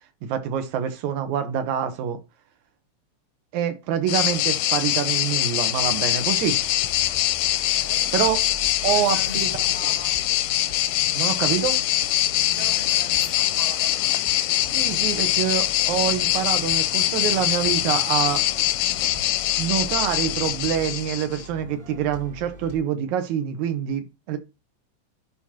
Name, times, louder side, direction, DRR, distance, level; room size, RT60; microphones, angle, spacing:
voice 1, 0.2-2.2 3.5-6.6 8.1-8.4 8.8-9.5 11.1-11.8 14.7-18.4 19.6-24.4, right 9 dB, 85° right, 2.4 m, -26 dB
sound 1, 4.1-21.4, left 14 dB, 90° left, 2.0 m, -23 dB
sound 2, 5.7-22.8, right 1 dB, 40° right, 2.4 m, -42 dB
voice 2, 7.4-8.2 8.8-10.3 12.5-14.1, right 1 dB, 65° right, 6.1 m, -41 dB
11.0 x 3.7 x 2.8 m
omnidirectional pair, 3.3 m